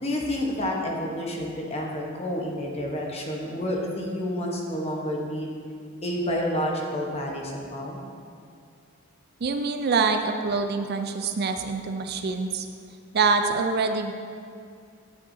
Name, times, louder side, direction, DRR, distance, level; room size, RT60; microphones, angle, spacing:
voice 1, 0.0-5.5 6.0-8.0, left 1 dB, 30° left, -1 dB, 1.1 m, -29 dB
voice 2, 9.4-12.7 13.1-14.1, right 4 dB, 50° right, 6 dB, 0.4 m, -25 dB
10.0 x 8.4 x 2.7 m, 2.3 s
head